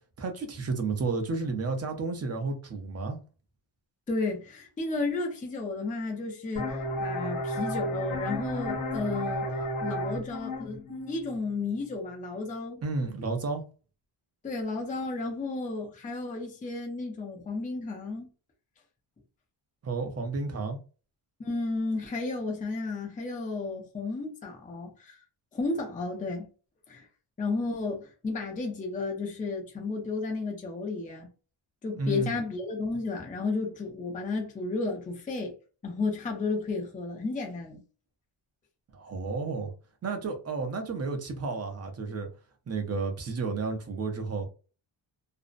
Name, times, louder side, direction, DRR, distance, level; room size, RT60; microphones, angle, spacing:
voice 1, 0.2-3.2 12.8-13.6 19.8-20.8 32.0-32.4 38.9-39.7 40.0-42.3 42.7-44.5, right 3 dB, 30° right, 0.5 m, -32 dB
voice 2, 4.1-9.5 9.8-12.8 14.4-18.3 21.4-25.2 25.5-26.5 26.9-27.1 27.4-31.3 31.8-35.5 35.8-37.8, left 3 dB, 20° left, 0.4 m, -33 dB
sound 1, 6.6-12.0, equal, 45° left, 0.9 m, -33 dB
2.5 x 2.0 x 2.4 m
wide cardioid pair, 155°, 48 cm